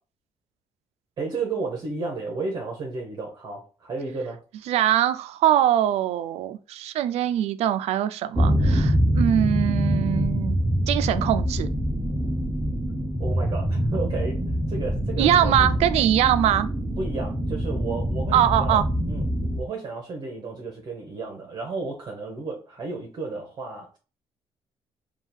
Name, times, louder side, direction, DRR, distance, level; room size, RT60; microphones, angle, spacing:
voice 1, 1.2-4.4 13.2-14.4 14.7-15.7 17.0-18.8 19.1-19.3 19.6-24.0, right 3 dB, 45° right, 1.0 m, -32 dB
voice 2, 4.7-10.6 10.9-11.7 15.2-16.7 18.3-18.8, right 11 dB, 80° right, 0.4 m, -22 dB
sound 1, 8.4-19.6, equal, 5° right, 0.5 m, -25 dB
3.7 x 2.4 x 4.3 m
cardioid pair, 150°, 11 cm